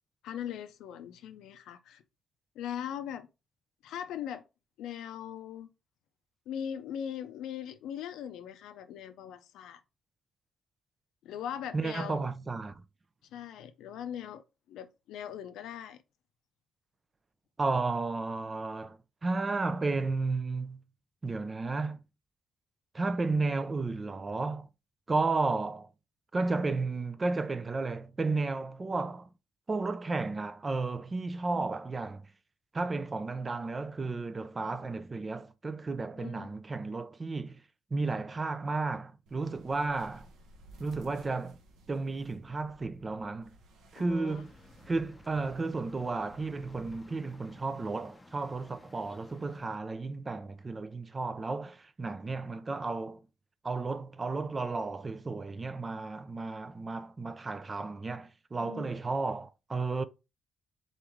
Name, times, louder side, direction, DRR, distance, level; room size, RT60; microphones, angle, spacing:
voice 1, 0.2-2.0 2.6-3.3 3.8-4.5 4.8-5.7 6.5-9.8 11.2-12.3 13.3-14.4 14.7-16.0 31.5-31.7 36.2-36.5 44.0-44.4 58.6-58.9, left 9 dB, 85° left, 0.5 m, -40 dB
voice 2, 11.7-12.8 17.6-20.8 21.2-22.0 22.9-24.7 25.1-25.9 26.3-29.3 29.7-32.3 32.7-37.6 37.9-40.3 40.8-41.6 41.9-43.5 43.9-44.5 44.9-53.2 53.6-60.0, right 3 dB, 30° right, 0.5 m, -33 dB
sound 1, 39.3-47.0, right 1 dB, 85° right, 0.9 m, -57 dB
sound 2, 44.3-49.8, left 1 dB, 20° left, 0.6 m, -55 dB
4.0 x 3.1 x 3.5 m
cardioid pair, 90°, 0 cm